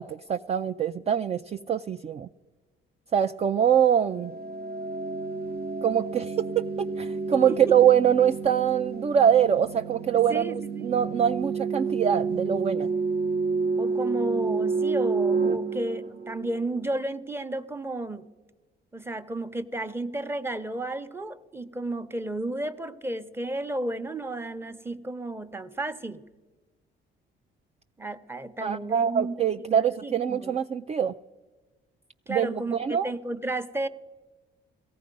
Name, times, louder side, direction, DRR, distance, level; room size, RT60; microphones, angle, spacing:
voice 1, 0.0-2.3 3.1-4.3 5.8-6.7 7.0-12.9 28.6-31.1 32.3-33.1, right 8 dB, 35° right, 9 dB, 0.4 m, -24 dB
sound 1, 4.1-16.8, right 4 dB, 55° right, 1.0 m, -30 dB
voice 2, 7.5-7.8 10.3-10.9 13.8-18.2 18.9-26.2 28.0-30.6 32.3-33.9, right 2 dB, 10° right, 11 dB, 0.8 m, -33 dB
17.0 x 14.5 x 5.3 m, 1.3 s
cardioid pair, 90°, 20 cm